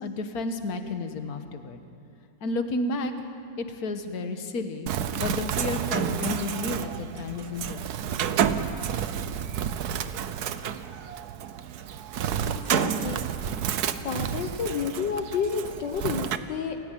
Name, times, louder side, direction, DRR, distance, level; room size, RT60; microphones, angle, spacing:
voice 1, 0.0-1.8 2.4-3.1 3.6-7.8, left 2 dB, 55° left, 7 dB, 1.8 m, -32 dB
Bird, 4.9-16.4, right 8 dB, 65° right, 1.3 m, -30 dB
voice 2, 12.4-13.2 14.0-16.8, left 6 dB, 75° left, 6 dB, 1.7 m, -30 dB
28.5 x 15.0 x 9.1 m, 2.5 s
omnidirectional pair, 2.0 m